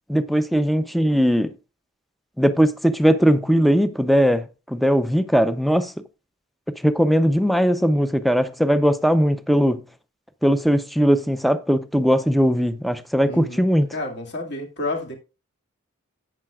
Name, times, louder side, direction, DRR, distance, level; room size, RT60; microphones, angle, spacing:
voice 1, 0.1-1.5 2.4-5.9 6.8-9.8 10.4-13.9, equal, ahead, 0.5 m, -19 dB
voice 2, 13.2-13.6 13.9-15.1, left 2 dB, 55° left, 2.1 m, -30 dB
13.5 x 8.8 x 2.4 m
head